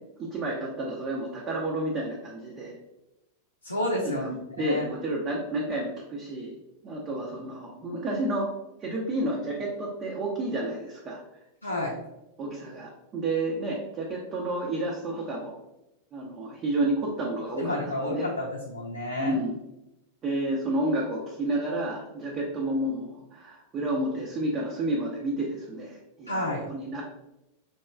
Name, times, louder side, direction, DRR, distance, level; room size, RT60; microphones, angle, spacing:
voice 1, 0.2-2.8 4.0-6.5 6.8-8.5 8.8-11.2 12.4-15.6 16.1-18.3 19.2-19.5 20.2-27.0, right 1 dB, 30° right, -3 dB, 0.6 m, -30 dB
voice 2, 3.6-4.3 4.6-4.8 11.6-12.0 17.6-19.4 26.3-26.7, left 1 dB, 80° left, -3 dB, 0.5 m, -30 dB
4.2 x 3.0 x 2.3 m, 0.92 s
figure-of-eight pair, 90°, 0 cm